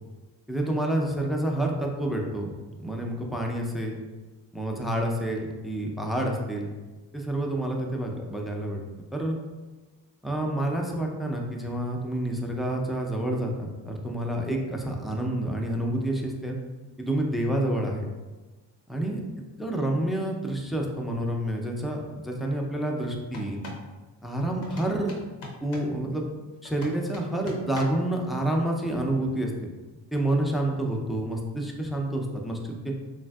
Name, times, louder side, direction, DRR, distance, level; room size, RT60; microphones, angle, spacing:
voice 1, 0.5-2.5 2.8-4.0 4.5-6.7 7.1-8.8 9.1-9.4 10.2-16.6 17.0-18.1 18.9-19.2 19.6-23.6 24.2-25.1 25.6-26.3 26.6-29.5 30.1-32.9, right 1 dB, ahead, 0 dB, 0.3 m, -28 dB
sound 1, 23.3-23.9 24.6-26.0 26.6-28.1, left 2 dB, 85° left, 0.7 m, -40 dB
3.2 x 2.6 x 2.2 m, 1.2 s
supercardioid pair, 60°, 45 cm